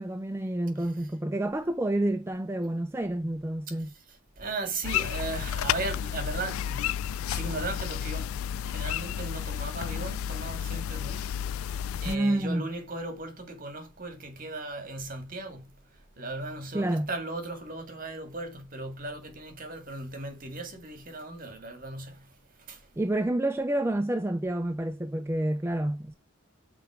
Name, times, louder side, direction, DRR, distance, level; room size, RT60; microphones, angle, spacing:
voice 1, 0.0-3.9 12.0-12.7 16.7-17.1 23.0-26.1, right 1 dB, 10° right, 0.4 m, -29 dB
voice 2, 3.7-22.9, right 2 dB, 40° right, 2.0 m, -38 dB
sound 1, 4.8-12.2, left 9 dB, 90° left, 0.3 m, -32 dB
6.1 x 4.3 x 4.8 m
head